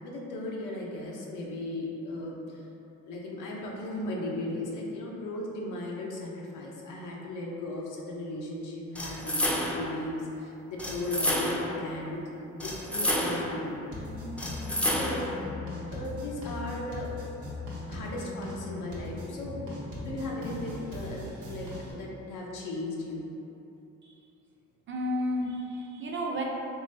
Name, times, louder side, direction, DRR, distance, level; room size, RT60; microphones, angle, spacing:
voice 1, 0.0-2.6 3.0-13.9 14.8-15.5 15.9-17.1 17.9-19.7 20.0-23.3, left 1 dB, 90° left, -3 dB, 0.7 m, -36 dB
sound 1, 8.9-9.9 10.8-11.8 12.6-13.6 14.4-15.3, left 1 dB, 5° left, 0.4 m, -30 dB
sound 2, 13.9-21.9, left 2 dB, 90° right, 0.9 m, -39 dB
voice 2, 24.9-26.4, equal, 40° right, -1 dB, 0.6 m, -32 dB
3.8 x 3.0 x 2.6 m, 2.9 s
cardioid pair, 90°, 30 cm